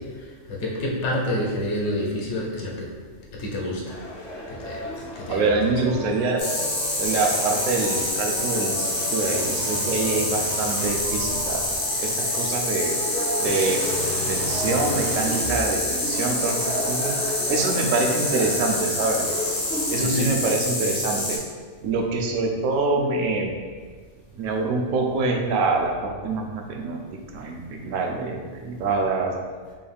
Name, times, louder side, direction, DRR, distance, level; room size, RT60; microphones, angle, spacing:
voice 1, 0.0-2.9 3.3-4.0 4.5-4.9 5.2-5.7 20.0-20.4, left 1 dB, 65° left, -2 dB, 1.0 m, -28 dB
sound 1, 3.9-20.1, left 1 dB, 45° left, 0.6 m, -34 dB
voice 2, 5.3-6.4 7.0-11.6 12.0-12.9 13.4-13.9 14.3-19.3 19.9-21.4 21.8-23.5 24.3-29.3, right 3 dB, 75° right, 2 dB, 1.0 m, -25 dB
sound 2, 6.4-21.4, left 1 dB, 85° left, 1.6 m, -27 dB
sound 3, 7.0-8.1 8.8-11.7 12.8-12.9 13.4-15.6 17.3-17.4, right 1 dB, 55° right, 0.3 m, -34 dB
5.4 x 2.3 x 3.4 m, 1.5 s
omnidirectional pair, 1.4 m